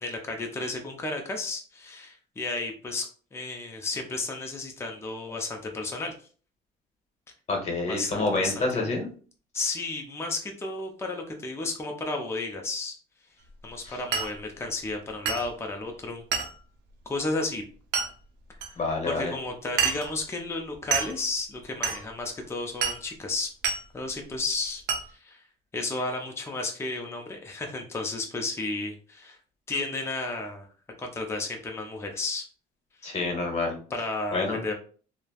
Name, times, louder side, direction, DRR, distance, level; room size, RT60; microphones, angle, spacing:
voice 1, 0.0-3.1 3.3-6.1 7.9-8.8 9.5-13.0 13.6-16.2 17.1-17.6 18.7-23.5 23.9-24.8 25.1-25.4 25.7-29.4 29.7-30.7 31.0-32.5 33.0-33.2 33.9-34.7, left 3 dB, 15° left, 2 dB, 0.5 m, -33 dB
voice 2, 7.5-9.1 13.8-14.0 18.8-19.3 33.0-33.8 34.3-34.6, left 3 dB, 40° left, 2 dB, 1.0 m, -28 dB
Glass, 14.1-14.4 15.3-15.5 16.3-16.6 17.9-18.1 18.6-18.7 19.8-20.1 20.9-21.2 21.8-22.0 22.8-23.0 23.6-23.8 24.9-25.1, right 6 dB, 85° right, 0.6 m, -27 dB
3.1 x 2.1 x 2.3 m, 0.41 s
cardioid pair, 110°, 17 cm